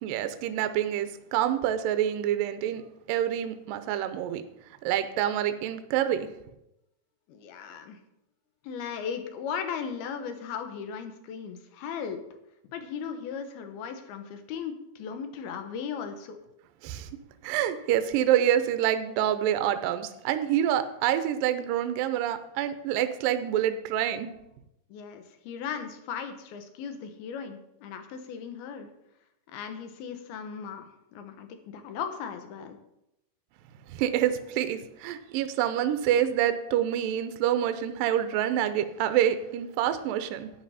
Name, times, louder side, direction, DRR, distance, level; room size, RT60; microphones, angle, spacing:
voice 1, 0.0-2.8 3.1-4.4 4.8-6.3 16.8-17.1 17.4-24.3 33.9-40.5, right 11 dB, 80° right, 10 dB, 2.1 m, -27 dB
voice 2, 7.3-8.0 8.6-12.2 12.7-16.4 24.9-28.9 29.5-32.8, left 7 dB, 75° left, 7 dB, 2.9 m, -37 dB
11.0 x 10.5 x 4.2 m, 0.85 s
omnidirectional pair, 4.7 m